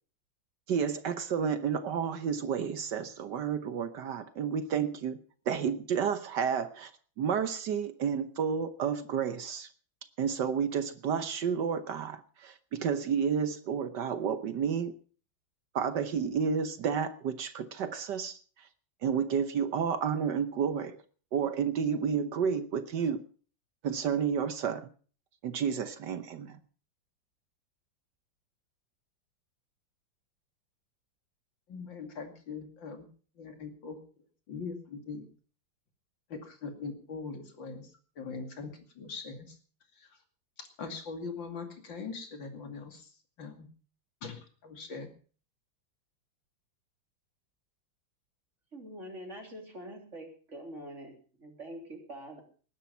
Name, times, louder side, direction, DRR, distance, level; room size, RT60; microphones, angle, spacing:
voice 1, 0.7-5.2 5.5-6.9 7.2-9.7 10.2-14.9 15.7-18.7 19.0-21.0 21.3-23.2 23.8-24.9 25.4-26.6, right 7 dB, 70° right, 1.5 m, -31 dB
voice 2, 31.7-33.1 33.4-34.0 34.5-35.3 36.3-39.6 39.9-40.1 40.6-43.1 43.4-43.7 44.2-45.1, left 4 dB, 75° left, 3.2 m, -41 dB
voice 3, 48.7-52.4, right 1 dB, 35° right, 3.7 m, -45 dB
19.5 x 10.5 x 5.5 m
omnidirectional pair, 2.1 m